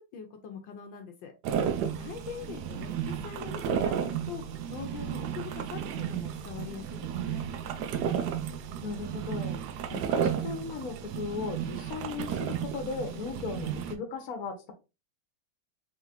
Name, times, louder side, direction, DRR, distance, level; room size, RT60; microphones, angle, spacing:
voice 1, 0.0-1.3 2.0-7.5, left 7 dB, 70° left, 4 dB, 1.4 m, -43 dB
sound 1, 1.4-14.0, right 8 dB, 75° right, 0.9 m, -33 dB
voice 2, 8.8-9.6 9.9-14.7, left 4 dB, 55° left, 4 dB, 1.2 m, -37 dB
3.8 x 3.6 x 2.7 m, 0.28 s
omnidirectional pair, 2.2 m